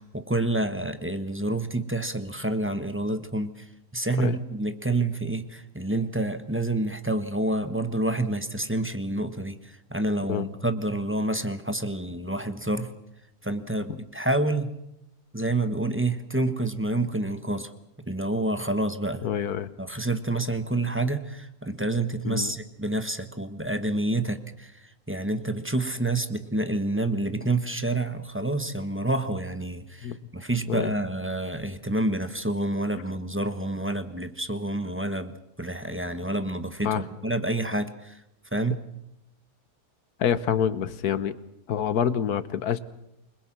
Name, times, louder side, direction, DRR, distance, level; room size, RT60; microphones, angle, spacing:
voice 1, 0.0-3.7 3.9-12.9 13.4-14.7 15.3-17.7 18.1-19.3 19.8-38.2 38.5-38.8, right 2 dB, 10° right, 9 dB, 1.1 m, -28 dB
voice 2, 19.2-19.7 22.2-22.5 30.0-30.2 30.7-30.9 36.8-37.0 40.2-41.3 41.7-42.8, left 8 dB, 75° left, 14 dB, 1.6 m, -26 dB
28.5 x 21.0 x 6.2 m, 0.84 s
omnidirectional pair, 1.7 m